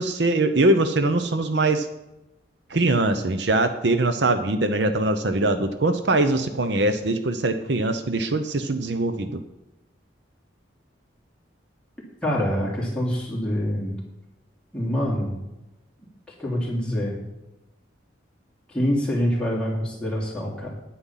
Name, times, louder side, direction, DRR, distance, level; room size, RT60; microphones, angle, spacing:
voice 1, 0.0-1.9 2.7-9.4, right 2 dB, 65° right, 9 dB, 0.8 m, -22 dB
voice 2, 12.2-14.0 14.7-15.4 16.4-17.2 18.7-20.7, equal, 5° left, -4 dB, 3.0 m, -25 dB
9.9 x 9.7 x 5.7 m, 0.96 s
head